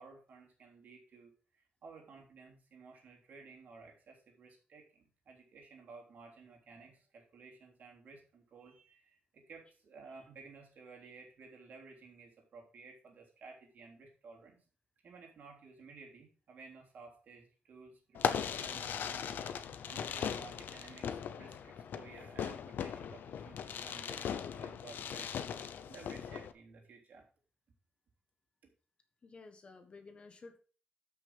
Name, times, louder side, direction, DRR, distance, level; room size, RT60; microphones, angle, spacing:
voice 1, 0.0-14.6 15.0-25.4 25.9-27.3, right 4 dB, 60° right, -1 dB, 3.5 m, -55 dB
Fireworks, 18.1-26.5, left 8 dB, 85° left, 0.7 m, -39 dB
voice 2, 29.2-30.6, left 3 dB, 35° left, 7 dB, 1.3 m, -53 dB
13.5 x 6.2 x 3.5 m, 0.37 s
wide cardioid pair, 175°, 3 cm